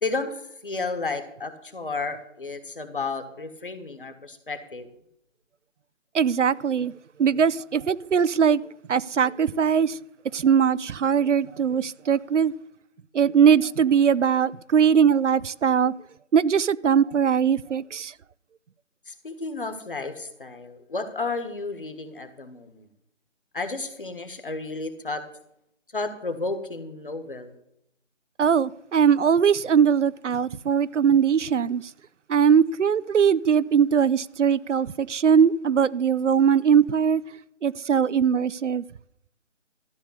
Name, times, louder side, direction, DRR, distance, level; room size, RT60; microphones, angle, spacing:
voice 1, 0.0-4.9 19.1-22.9 23.5-25.2 25.9-27.5, left 3 dB, 45° left, 1.5 m, -32 dB
voice 2, 6.1-6.9 7.2-8.6 8.9-10.0 10.3-12.5 13.1-15.9 16.3-18.1 28.4-31.8 32.3-37.2 37.6-38.8, right 7 dB, 70° right, 0.6 m, -21 dB
13.5 x 6.5 x 8.1 m
figure-of-eight pair, 180°, 37 cm